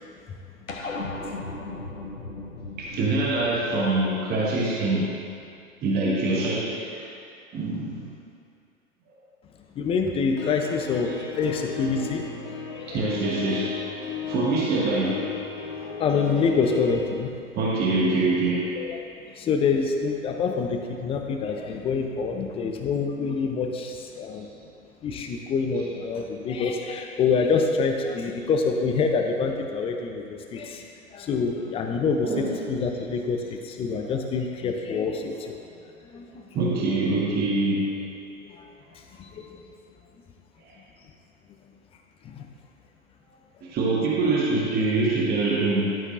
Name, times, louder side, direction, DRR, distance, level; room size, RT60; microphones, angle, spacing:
sound 1, 0.7-5.4, left 2 dB, 85° left, 1.1 m, -37 dB
voice 1, 2.8-5.1 5.8-7.1 7.5-8.1 11.1-11.2 12.9-13.8 14.2-15.4 17.5-18.7 24.3-24.4 25.7-25.9 27.2-27.6 32.2-33.2 34.0-34.2 36.5-38.0 40.6-40.8 43.6-46.0, right 2 dB, 25° right, -4 dB, 1.1 m, -25 dB
voice 2, 9.8-12.2 12.7-13.0 16.0-17.3 18.8-18.9 19.3-24.5 25.0-35.6 36.1-36.4 38.5-38.7 39.2-39.6 42.2-42.5, left 5 dB, 15° left, 4 dB, 0.5 m, -26 dB
sound 2, 10.4-17.1, left 6 dB, 40° left, 1.3 m, -35 dB
11.0 x 9.6 x 2.5 m, 2.4 s
figure-of-eight pair, 95°, 40 cm